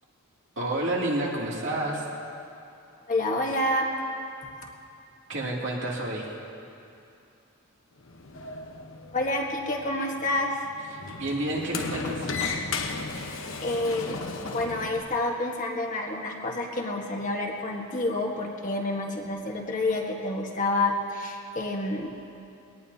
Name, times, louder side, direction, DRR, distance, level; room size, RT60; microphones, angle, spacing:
voice 1, 0.6-2.0 5.3-6.3 10.9-12.4, right 1 dB, 60° right, -4 dB, 2.7 m, -30 dB
voice 2, 3.1-3.9 9.1-10.7 13.1-14.2 14.4-22.2, left 2 dB, 35° left, 0 dB, 1.4 m, -29 dB
Sliding door, 8.0-15.0, left 4 dB, 65° left, 1.0 m, -35 dB
22.0 x 18.0 x 2.8 m, 2.6 s
head